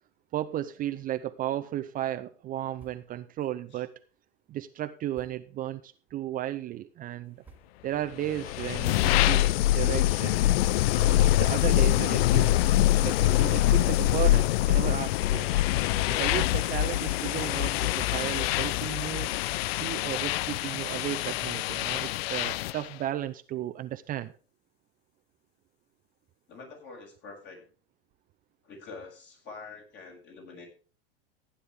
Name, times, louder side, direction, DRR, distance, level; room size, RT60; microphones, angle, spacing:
voice 1, 0.3-3.9 4.5-7.4 7.8-10.4 10.9-12.7 13.0-15.5 16.1-19.3 19.7-24.3, right 13 dB, 30° right, 9 dB, 0.6 m, -34 dB
sound 1, 2.7-3.2 3.6-3.7 3.9-4.1 5.1-5.5 6.3-6.4 7.1-7.2 7.4-7.9 8.5-8.6 9.6-10.2 10.6-10.8 11.6-12.2 12.6-13.1 13.5-14.4 14.8-15.2 15.7-16.5 16.9-18.7, right 4 dB, 5° right, 2.3 m, -53 dB
sound 2, 8.2-22.9, left 15 dB, 75° left, 0.5 m, -25 dB
voice 2, 26.5-27.6 28.6-30.7, left 4 dB, 35° left, 2 dB, 6.8 m, -46 dB
15.5 x 9.9 x 3.6 m, 0.38 s
supercardioid pair, 135°, 30 cm